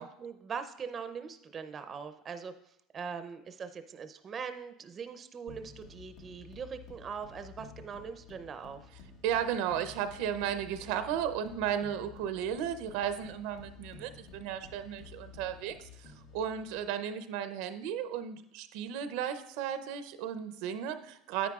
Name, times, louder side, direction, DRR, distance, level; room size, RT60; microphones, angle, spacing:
voice 1, 0.0-2.5 2.9-8.9, right 6 dB, 30° right, 10 dB, 0.5 m, -41 dB
sound 1, 5.5-17.0, left 4 dB, 60° left, 1.1 m, -52 dB
voice 2, 9.2-21.5, right 9 dB, 75° right, 11 dB, 0.6 m, -34 dB
9.9 x 9.2 x 2.4 m, 0.76 s
supercardioid pair, 120°, 0 cm